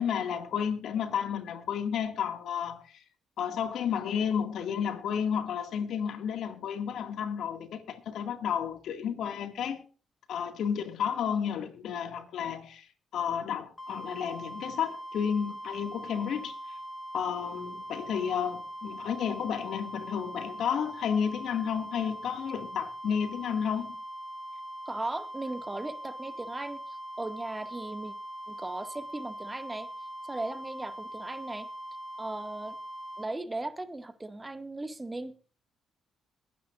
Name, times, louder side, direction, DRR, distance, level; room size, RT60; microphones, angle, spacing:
voice 1, 0.0-2.8 3.4-9.8 10.3-12.9 13.1-16.6 17.1-24.0, left 8 dB, 70° left, 2.1 m, -32 dB
sound 1, 13.8-33.3, right 1 dB, 20° left, 3.7 m, -42 dB
voice 2, 24.9-28.1 28.5-29.9 30.2-31.7 32.2-32.8 33.2-35.3, right 2 dB, 20° right, 2.0 m, -37 dB
22.0 x 10.0 x 2.5 m
supercardioid pair, 60°, 0 cm